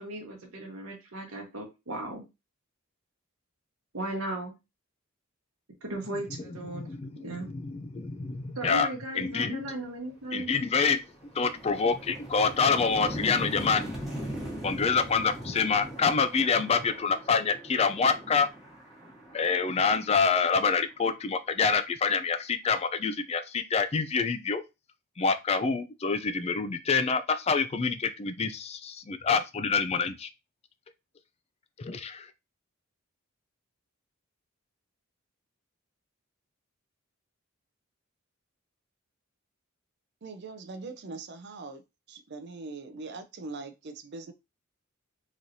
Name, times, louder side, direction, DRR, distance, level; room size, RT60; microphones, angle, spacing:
voice 1, 0.0-2.2 3.9-4.5 5.8-6.9 7.2-7.5 8.5-10.5, right 1 dB, 75° right, 1.1 m, -36 dB
voice 2, 6.1-9.6 10.3-11.0 11.3-13.9 14.6-18.5 19.3-24.6 25.2-30.3 31.8-32.3, left 5 dB, 30° left, 0.3 m, -27 dB
sound 1, 9.7-9.8 10.2-21.0, equal, ahead, 1.3 m, -40 dB
voice 3, 40.2-41.8 42.1-44.3, right 3 dB, 50° right, 0.5 m, -41 dB
3.9 x 3.1 x 2.6 m
head